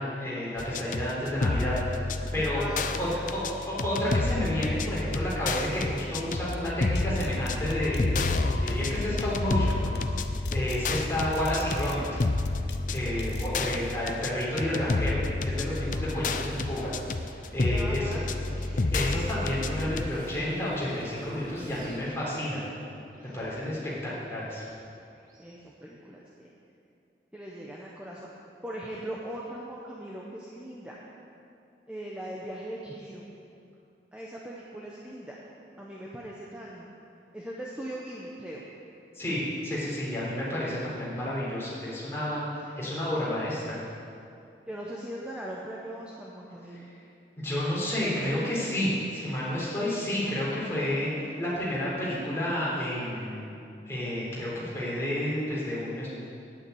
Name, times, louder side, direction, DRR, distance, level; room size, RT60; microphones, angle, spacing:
voice 1, 0.0-2.0 2.3-2.6 3.0-3.4 3.7-9.9 10.5-12.0 12.9-16.9 17.5-18.2 18.9-22.7 23.3-24.7 39.1-42.4 42.8-43.7 47.4-51.1 51.4-53.5 53.9-56.1, left 1 dB, 15° left, -8 dB, 3.7 m, -30 dB
sound 1, 0.6-20.1, left 3 dB, 45° left, 0.5 m, -30 dB
voice 2, 2.5-3.6 16.2-16.6 17.6-18.8 25.4-26.5 27.3-28.3 28.6-31.0 31.9-33.3 34.1-35.4 35.8-36.9 37.3-38.7 44.7-46.9 49.9-50.2 51.5-51.6, right 1 dB, 5° right, -4 dB, 1.0 m, -40 dB
sound 2, 6.4-13.5, left 2 dB, 80° left, 0.7 m, -37 dB
sound 3, 15.8-25.6, right 1 dB, 50° right, 2.5 m, -50 dB
9.7 x 8.8 x 8.5 m, 2.6 s
head